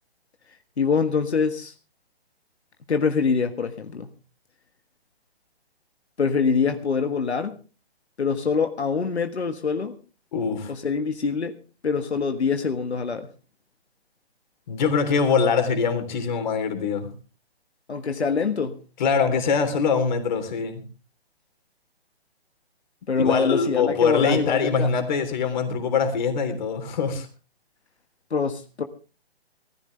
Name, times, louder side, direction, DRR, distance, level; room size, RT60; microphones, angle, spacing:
voice 1, 0.8-1.7 2.9-4.1 6.2-7.6 8.2-9.9 10.7-11.6 11.8-13.3 17.9-18.8 23.1-24.9 28.3-28.8, left 5 dB, 90° left, 1.6 m, -24 dB
voice 2, 10.3-10.7 14.7-17.1 19.0-20.8 23.2-27.3, left 5 dB, 45° left, 3.5 m, -23 dB
20.0 x 14.5 x 3.3 m
hypercardioid pair, 150°, 32 cm